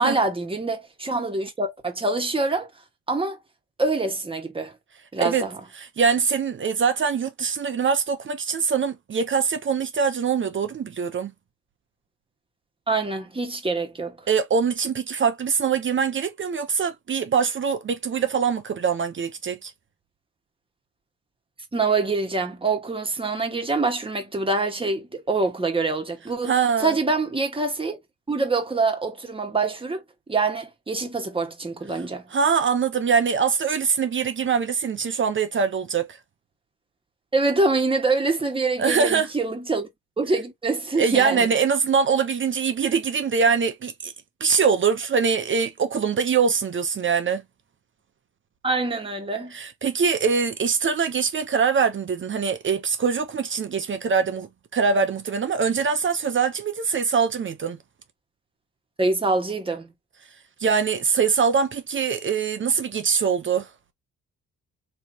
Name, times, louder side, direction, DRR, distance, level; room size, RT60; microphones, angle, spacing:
voice 1, 0.0-2.7 3.1-3.4 3.8-4.7 5.1-5.6 12.9-14.2 21.7-26.5 26.8-28.0 28.3-30.0 30.3-32.2 37.3-39.9 40.2-41.5 48.6-49.5 59.0-59.9, right 3 dB, 15° right, 1.4 m, -25 dB
voice 2, 5.8-11.3 14.3-19.7 26.5-26.9 32.3-36.2 38.8-39.3 41.0-44.1 44.4-47.4 49.5-57.8 60.6-63.7, right 6 dB, 40° right, 0.7 m, -23 dB
3.3 x 2.9 x 2.7 m
cardioid pair, 90°, 30 cm